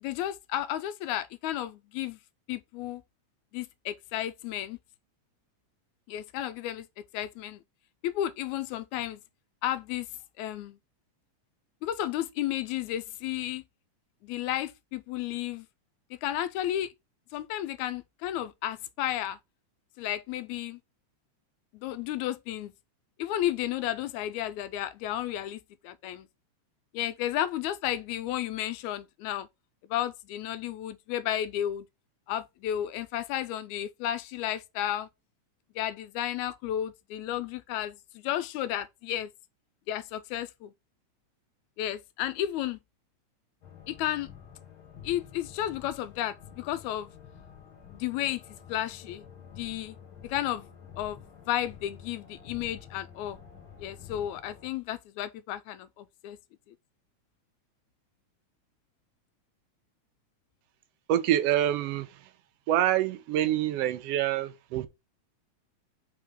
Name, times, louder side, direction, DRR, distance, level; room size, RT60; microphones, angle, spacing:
voice 1, 0.0-2.2 2.5-3.0 3.5-4.8 6.1-6.9 7.1-7.6 8.0-9.2 9.6-10.1 10.4-10.8 11.8-13.6 14.2-15.7 16.2-16.9 17.3-19.4 20.0-20.8 21.7-22.7 23.2-26.3 26.9-29.5 29.9-31.9 32.3-35.1 35.8-39.3 39.9-40.7 41.8-42.8 43.9-44.3 45.0-47.1 47.9-48.4 48.7-49.2 49.5-50.0 50.2-50.7 51.0-51.2 51.5-53.4 53.8-56.4, left 12 dB, 80° left, 1.9 m, -32 dB
sound 1, 43.6-54.7, left 7 dB, 55° left, 1.9 m, -49 dB
voice 2, 61.1-62.3 62.7-64.9, right 12 dB, 75° right, 1.6 m, -26 dB
4.8 x 3.8 x 5.1 m
omnidirectional pair, 3.4 m